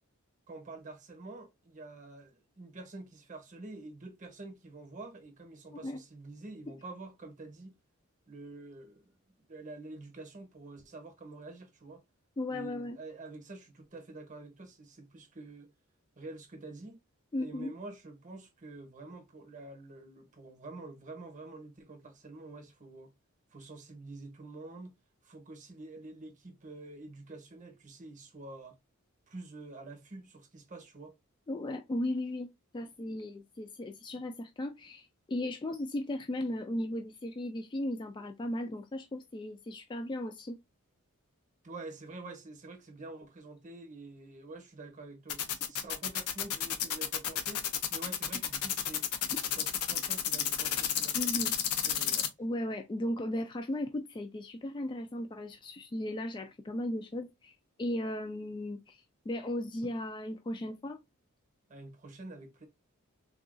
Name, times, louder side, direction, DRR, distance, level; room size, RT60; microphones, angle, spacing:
voice 1, 0.5-7.8 8.3-9.1 9.5-12.0 12.5-15.7 16.2-17.0 17.4-23.1 23.5-25.0 25.2-28.8 29.3-31.1 41.6-49.1 49.4-51.5 51.8-52.3 61.7-62.7, right 2 dB, 35° right, 0.8 m, -47 dB
voice 2, 12.4-13.0 17.3-17.7 31.5-40.6 51.1-51.5 52.4-57.5 57.8-61.0, left 1 dB, 20° left, 0.3 m, -36 dB
sound 1, 45.3-52.3, left 9 dB, 85° left, 0.6 m, -31 dB
3.7 x 2.3 x 2.4 m
head